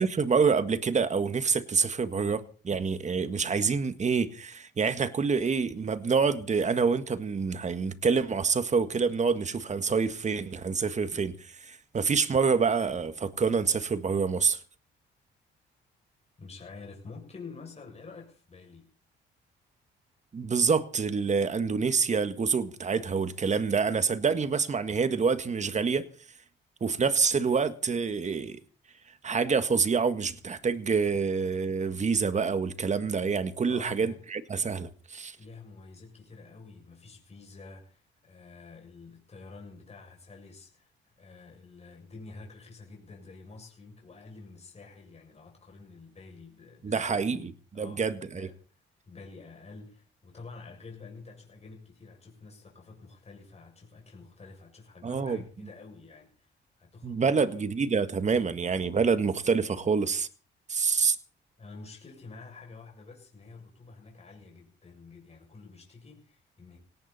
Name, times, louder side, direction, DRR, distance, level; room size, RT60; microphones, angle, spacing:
voice 1, 0.0-11.3 11.6-14.6 20.3-26.1 26.8-28.6 29.2-35.4 46.8-47.5 47.8-48.5 55.0-55.4 57.0-60.3 60.7-61.2, right 5 dB, 35° right, 1.8 m, -27 dB
voice 2, 16.4-18.9 33.6-34.2 35.4-40.9 41.2-47.5 47.7-48.6 49.1-57.7 61.6-66.8, left 4 dB, 35° left, 7.1 m, -48 dB
18.5 x 18.0 x 4.3 m
cardioid pair, 90°, 20 cm